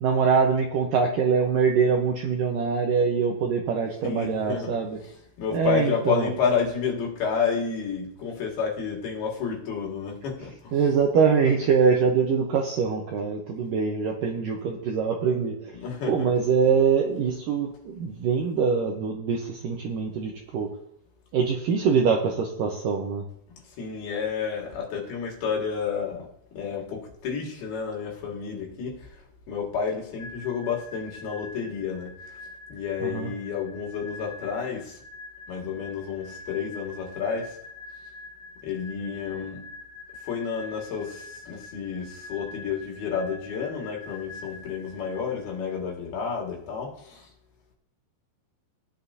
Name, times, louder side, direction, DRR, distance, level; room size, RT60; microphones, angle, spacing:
voice 1, 0.0-5.0 5.5-6.3 10.7-15.8 16.1-20.7 21.3-23.2 33.0-33.3, right 6 dB, 75° right, 2.0 m, -24 dB
voice 2, 4.0-4.8 5.4-10.7 15.8-16.3 23.8-26.3 26.5-29.2 29.5-32.4 32.7-35.0 35.5-37.6 38.6-39.7 40.2-47.3, left 6 dB, 65° left, 3.7 m, -30 dB
sound 1, 30.2-45.8, left 3 dB, 25° left, 2.4 m, -45 dB
15.5 x 10.0 x 2.7 m
omnidirectional pair, 5.0 m